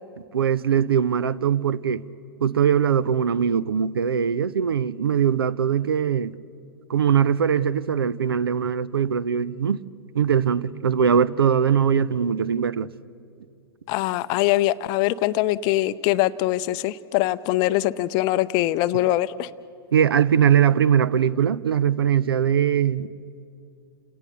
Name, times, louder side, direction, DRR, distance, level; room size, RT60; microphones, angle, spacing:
voice 1, 0.3-2.0 2.4-6.3 6.9-9.8 10.1-12.9 19.9-23.1, right 8 dB, 70° right, 0.6 m, -21 dB
voice 2, 13.9-19.5, left 15 dB, 35° left, 0.6 m, -23 dB
30.0 x 18.0 x 6.8 m
figure-of-eight pair, 105°, 13 cm